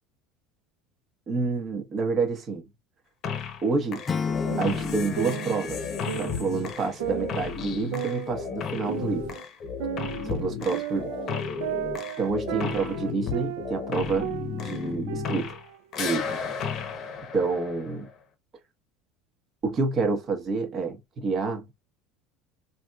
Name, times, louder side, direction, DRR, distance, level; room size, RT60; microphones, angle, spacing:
voice 1, 1.3-2.6 3.6-4.0 4.6-5.9 6.1-9.3 10.2-11.1 12.2-14.3 14.6-15.6 16.0-16.4 17.3-18.1 19.6-21.7, right 4 dB, 40° right, 1.1 m, -28 dB
sound 1, 3.2-3.7 3.9-15.7 15.9-18.1, left 6 dB, 45° left, 0.8 m, -34 dB
Acoustic guitar / Strum, 4.1-7.1, left 6 dB, 25° left, 0.3 m, -33 dB
sound 2, 4.5-6.6 7.0-9.4 9.8-13.9 14.2-16.2, right 12 dB, 80° right, 0.4 m, -35 dB
3.4 x 2.7 x 2.3 m
supercardioid pair, 105°, 0 cm